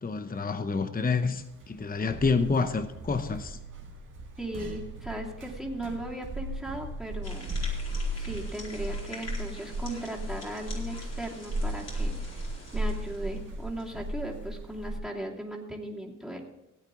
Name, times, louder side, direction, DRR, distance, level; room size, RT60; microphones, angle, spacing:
voice 1, 0.0-3.6, left 4 dB, 30° left, 0.8 m, -28 dB
sound 1, 1.5-15.0, right 1 dB, 75° right, 2.0 m, -36 dB
voice 2, 4.4-7.5 8.1-12.4 12.7-16.4, right 1 dB, ahead, 2.8 m, -37 dB
sound 2, 7.2-14.0, left 2 dB, 50° left, 4.3 m, -46 dB
16.5 x 8.9 x 3.8 m
cardioid pair, 60°, 32 cm